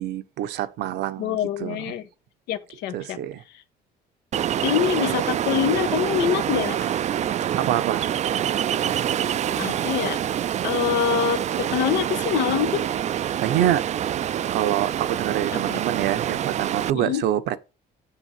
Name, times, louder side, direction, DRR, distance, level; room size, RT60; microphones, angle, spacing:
voice 1, 0.0-2.0 2.9-3.4 7.6-8.1 13.4-13.9 14.5-17.6, right 12 dB, 80° right, 1.0 m, -26 dB
voice 2, 1.2-2.0 2.5-3.2 4.6-6.8 9.6-10.2 10.6-12.8 15.5-15.8 16.9-17.2, left 9 dB, 90° left, 1.2 m, -25 dB
Ocean, 4.3-16.9, right 10 dB, 45° right, 0.4 m, -26 dB
7.6 x 7.1 x 4.8 m
cardioid pair, 110°, 17 cm